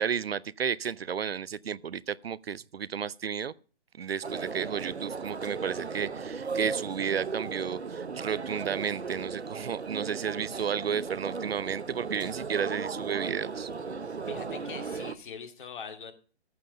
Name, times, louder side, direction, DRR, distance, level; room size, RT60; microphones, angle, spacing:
voice 1, 0.0-3.5 4.0-13.7, right 7 dB, 65° right, 0.6 m, -32 dB
sound 1, 4.2-15.1, right 4 dB, 85° right, 1.0 m, -36 dB
voice 2, 14.3-16.1, left 6 dB, 50° left, 2.2 m, -42 dB
14.5 x 7.7 x 5.1 m
figure-of-eight pair, 135°, 32 cm